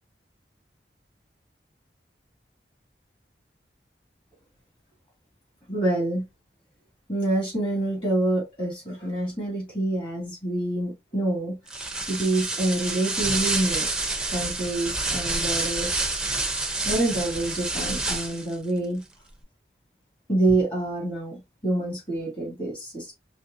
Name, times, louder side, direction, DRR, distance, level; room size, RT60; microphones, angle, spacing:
voice 1, 5.7-6.2 7.1-11.6 12.1-13.9 14.3-16.0 16.8-19.0 20.3-21.4 21.6-23.1, right 2 dB, 30° left, 2.3 m, -26 dB
sound 1, 11.7-18.6, right 2 dB, 5° right, 0.6 m, -28 dB
5.1 x 3.0 x 2.7 m
head